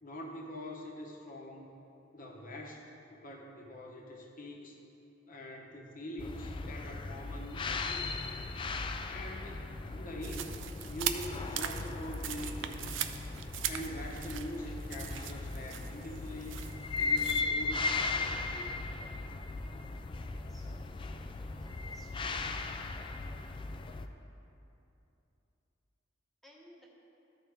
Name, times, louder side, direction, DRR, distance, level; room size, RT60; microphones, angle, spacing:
voice 1, 0.0-1.7 2.1-2.8 3.1-4.8 5.2-8.4 9.1-10.5 10.9-13.0 13.6-16.6 17.0-18.7, left 1 dB, 45° left, -1 dB, 1.0 m, -44 dB
sound 1, 6.2-24.1, left 3 dB, 25° left, 0.3 m, -37 dB
sound 2, 10.2-17.4, right 10 dB, 85° right, 0.4 m, -40 dB
voice 2, 20.0-20.8 21.6-22.5 26.4-26.9, equal, ahead, -4 dB, 1.1 m, -60 dB
13.5 x 4.5 x 3.5 m, 2.8 s
head